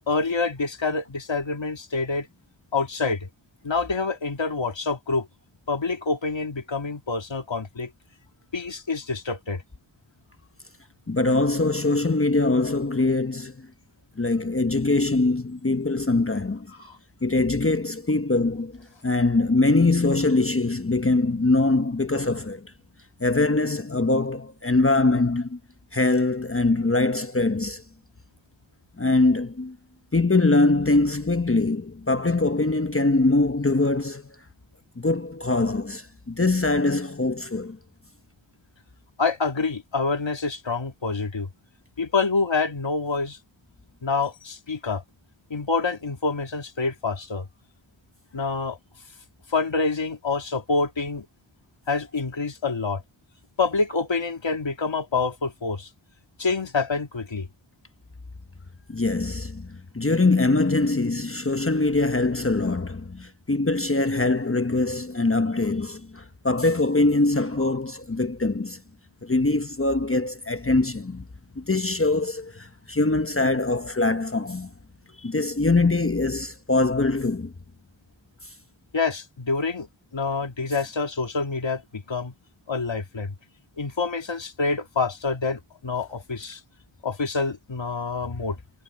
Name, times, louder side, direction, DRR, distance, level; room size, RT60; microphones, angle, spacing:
voice 1, 0.1-2.3 2.7-3.3 3.6-5.3 5.7-7.9 8.5-9.6 16.8-17.0 39.2-41.5 42.0-43.4 44.0-45.0 45.5-47.5 48.3-48.8 49.5-51.3 51.9-53.0 53.6-55.9 56.4-57.5 78.9-79.9 80.1-82.3 82.7-83.3 83.8-86.6 87.0-88.6, left 4 dB, 65° left, 2.1 m, -27 dB
voice 2, 11.1-13.7 14.2-16.7 17.2-22.7 23.2-25.6 25.9-27.8 29.0-29.8 30.1-34.4 35.0-37.8 58.9-68.8 69.2-71.3 71.5-74.7 75.2-77.5 78.4-78.5, left 2 dB, 25° left, 1.0 m, -23 dB
wide cardioid pair, 50°, 48 cm